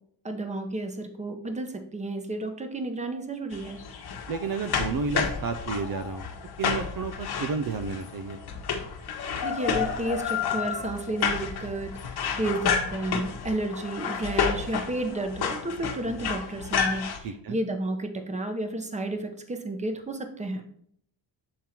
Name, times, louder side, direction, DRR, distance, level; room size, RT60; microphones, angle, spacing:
voice 1, 0.2-3.8 9.4-20.6, right 2 dB, 15° right, 6 dB, 0.9 m, -32 dB
Cimento na Parede, 3.5-17.2, left 6 dB, 55° left, 1.2 m, -31 dB
voice 2, 4.3-6.3 6.6-8.4 17.2-17.6, right 4 dB, 50° right, 8 dB, 0.6 m, -31 dB
7.6 x 3.6 x 4.4 m, 0.65 s
cardioid pair, 105°, 45 cm